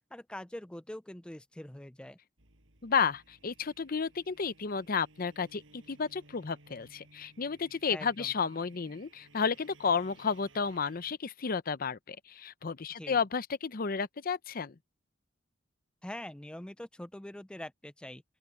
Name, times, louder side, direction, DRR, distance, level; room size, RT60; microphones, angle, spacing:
voice 1, 0.1-2.2 7.9-8.3 13.0-13.2 16.0-18.2, left 1 dB, 5° left, 0.4 m, -44 dB
sound 1, 2.4-11.2, right 2 dB, 75° right, 6.1 m, -60 dB
voice 2, 2.8-14.7, left 5 dB, 50° left, 0.6 m, -32 dB
open air
head